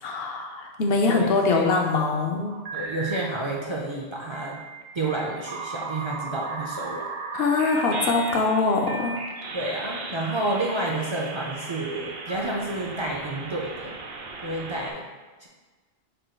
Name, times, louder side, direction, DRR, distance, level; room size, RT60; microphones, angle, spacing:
voice 1, 0.0-2.5 7.3-9.2, left 3 dB, 75° left, 2 dB, 0.8 m, -23 dB
voice 2, 1.1-1.7 2.7-4.6 4.9-7.1 9.5-14.0 14.4-15.0 15.4-15.5, right 2 dB, 45° right, -2 dB, 0.4 m, -30 dB
sound 1, 2.5-3.4 4.3-14.9, right 3 dB, 70° right, 0.8 m, -36 dB
5.0 x 2.3 x 4.3 m, 1.3 s
omnidirectional pair, 1.1 m